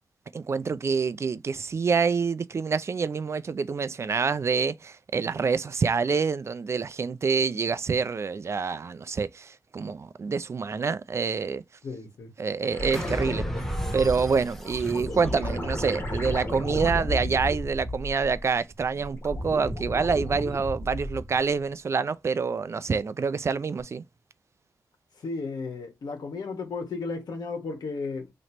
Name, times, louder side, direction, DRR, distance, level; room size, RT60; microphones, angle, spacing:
voice 1, 0.3-11.6 12.4-13.4 13.9-24.0, right 5 dB, 40° right, 0.4 m, -27 dB
voice 2, 11.8-12.3 25.2-28.3, left 4 dB, 75° left, 1.5 m, -34 dB
sound 1, 12.7-18.5 18.8-21.4 23.8-23.9, left 1 dB, 30° left, 1.8 m, -33 dB
sound 2, 12.9-16.3, right 1 dB, 5° left, 1.1 m, -38 dB
3.0 x 3.0 x 4.3 m
wide cardioid pair, 105°, 7 cm